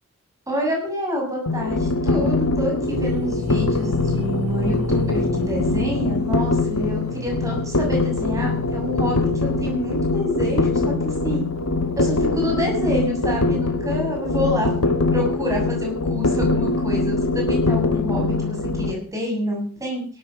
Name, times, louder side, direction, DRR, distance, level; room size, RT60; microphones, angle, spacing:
voice 1, 0.5-11.4 12.0-14.7 15.1-20.1, left 1 dB, 15° right, 0 dB, 7.1 m, -27 dB
sound 1, 1.5-18.9, left 3 dB, 80° left, 2.1 m, -23 dB
sound 2, 2.8-10.5, left 1 dB, 65° right, 6.8 m, -32 dB
18.0 x 13.5 x 5.2 m, 0.42 s
head